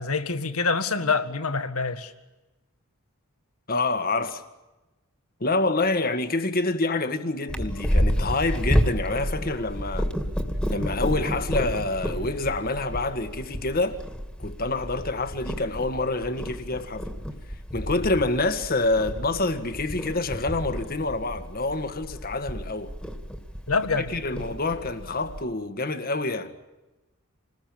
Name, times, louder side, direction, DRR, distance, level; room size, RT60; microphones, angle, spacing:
voice 1, 0.0-2.1 23.7-24.5, left 4 dB, 80° left, 1.8 m, -26 dB
voice 2, 3.7-4.4 5.4-10.1 10.7-14.0 14.4-17.1 17.7-22.9 24.0-26.5, left 2 dB, 45° left, 1.8 m, -27 dB
Purr, 7.5-25.4, equal, 5° left, 2.3 m, -30 dB
27.5 x 20.5 x 8.7 m
head